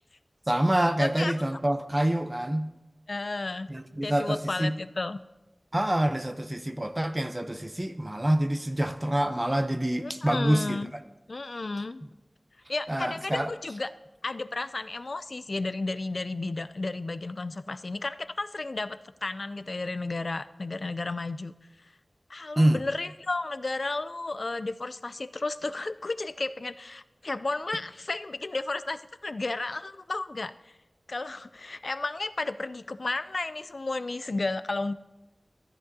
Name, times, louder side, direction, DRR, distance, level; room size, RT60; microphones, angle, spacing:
voice 1, 0.5-2.7 3.7-4.7 5.7-10.8 12.9-13.5 22.6-22.8, right 1 dB, 20° right, 0.6 m, -26 dB
voice 2, 1.0-1.3 3.1-3.7 4.0-5.2 10.0-10.9 11.3-12.0 12.7-13.9 14.2-21.5 22.3-30.5 31.1-34.9, left 3 dB, 65° left, 0.4 m, -33 dB
14.0 x 10.0 x 2.7 m
wide cardioid pair, 65°, 0 cm